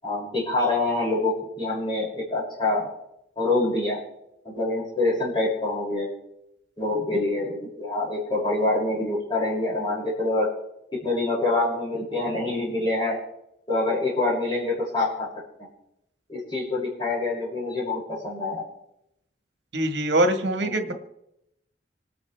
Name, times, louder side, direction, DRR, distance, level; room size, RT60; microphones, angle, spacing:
voice 1, 0.0-2.9 3.4-4.0 4.4-6.1 6.8-10.5 10.9-13.2 13.7-15.3 16.3-18.6 20.6-20.9, left 2 dB, 25° left, -6 dB, 6.9 m, -26 dB
voice 2, 19.7-20.9, right 1 dB, 80° right, 6 dB, 1.8 m, -23 dB
26.5 x 9.7 x 3.5 m, 0.82 s
head